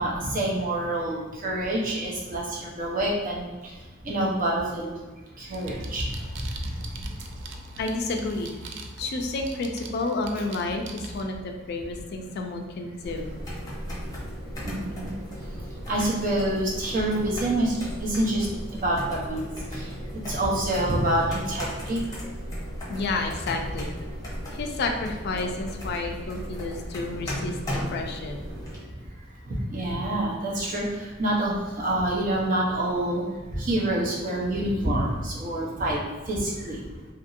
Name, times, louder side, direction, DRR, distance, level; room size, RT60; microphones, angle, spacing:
voice 1, 0.0-3.5 4.0-4.9 5.4-6.1 6.6-6.7 14.6-15.1 15.9-18.5 18.8-19.8 20.3-22.0 29.5-33.2 33.5-36.0 36.3-36.8, right 1 dB, 45° right, -4 dB, 0.7 m, -27 dB
sound 1, 5.5-11.2, right 2 dB, 70° right, 0.3 m, -41 dB
voice 2, 7.8-8.5 9.0-13.3 22.9-23.9 24.5-28.4, left 3 dB, 55° left, 4 dB, 0.4 m, -30 dB
sound 2, 13.0-28.8, equal, 20° left, 0.7 m, -36 dB
2.8 x 2.6 x 2.5 m, 1.3 s
head